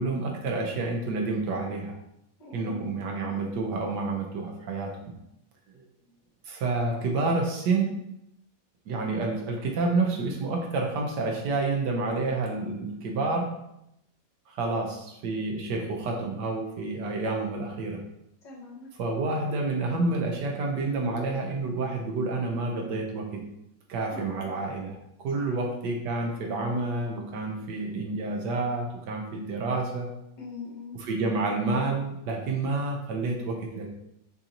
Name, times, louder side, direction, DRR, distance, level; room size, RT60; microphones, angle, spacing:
voice 1, 0.0-2.0 2.5-4.9 6.5-7.9 8.9-13.5 14.5-18.0 19.0-23.4 23.9-25.0 25.2-30.1 31.0-33.9, right 3 dB, 70° right, 1 dB, 1.3 m, -29 dB
voice 2, 2.4-2.9 18.4-18.9 24.1-24.5 25.3-25.7 30.4-31.0, left 4 dB, 75° left, -5 dB, 2.0 m, -42 dB
6.2 x 2.7 x 2.9 m, 0.82 s
omnidirectional pair, 2.0 m